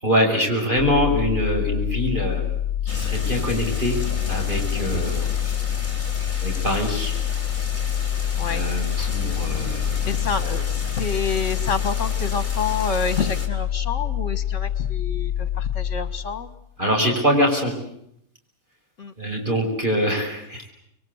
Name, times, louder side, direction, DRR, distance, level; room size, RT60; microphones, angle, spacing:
voice 1, 0.0-2.5 2.8-4.0 4.3-5.3 6.4-7.2 8.5-9.9 10.4-10.5 16.8-17.7 19.2-20.7, equal, 35° right, 1 dB, 6.1 m, -24 dB
sound 1, 0.8-16.5, left 10 dB, 60° right, 3.5 m, -26 dB
sound 2, 2.9-13.5, left 2 dB, 35° left, 4.0 m, -34 dB
voice 2, 8.4-8.7 10.1-16.5 19.0-19.1, left 5 dB, 60° left, 12 dB, 2.1 m, -28 dB
28.5 x 22.5 x 8.1 m, 0.73 s
omnidirectional pair, 1.5 m